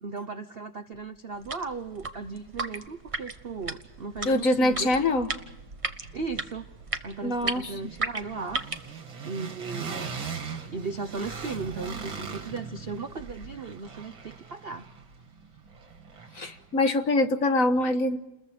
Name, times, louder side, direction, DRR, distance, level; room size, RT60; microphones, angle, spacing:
voice 1, 0.0-5.0 6.1-6.7 7.0-8.7 9.2-10.1 10.7-14.9, right 4 dB, 50° right, 10 dB, 0.7 m, -36 dB
sound 1, 1.3-8.9, right 3 dB, 20° right, 1.0 m, -36 dB
sound 2, 2.8-2.9 3.2-4.3 4.6-16.8, right 5 dB, 85° right, 3.3 m, -41 dB
voice 2, 4.2-5.3 7.2-7.7 16.3-18.2, left 2 dB, 45° left, 8 dB, 1.6 m, -24 dB
30.0 x 21.5 x 5.1 m, 0.96 s
omnidirectional pair, 2.1 m